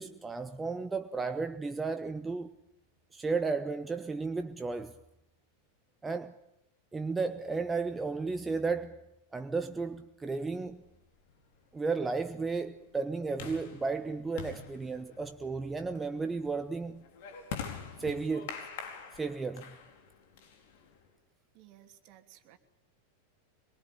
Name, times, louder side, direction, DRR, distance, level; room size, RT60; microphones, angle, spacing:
voice 1, 0.0-2.5 3.1-4.9 6.0-6.4 6.9-9.0 9.3-10.8 11.7-17.0 18.0-18.6 19.1-19.8, right 4 dB, 10° right, 1.0 m, -34 dB
sound 1, 10.7-21.1, left 7 dB, 50° left, 4.6 m, -46 dB
voice 2, 21.5-22.6, right 12 dB, 45° right, 2.9 m, -57 dB
25.5 x 23.0 x 9.0 m
figure-of-eight pair, 90°, 0 cm